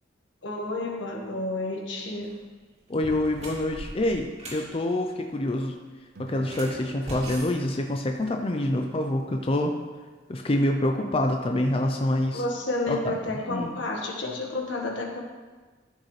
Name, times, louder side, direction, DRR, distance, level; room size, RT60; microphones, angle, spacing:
voice 1, 0.4-2.4 12.3-15.2, left 2 dB, 80° left, 0 dB, 1.5 m, -31 dB
sound 1, 2.1-2.4 2.9-4.7 6.4-8.4, right 1 dB, 40° right, 2.3 m, -40 dB
voice 2, 2.9-5.8 6.2-9.8 10.3-12.4 12.9-13.2 13.5-13.8, left 1 dB, 30° left, 3 dB, 0.5 m, -26 dB
Guitar, 6.1-11.2, right 3 dB, 55° right, 0.7 m, -48 dB
14.0 x 6.5 x 3.3 m, 1.3 s
head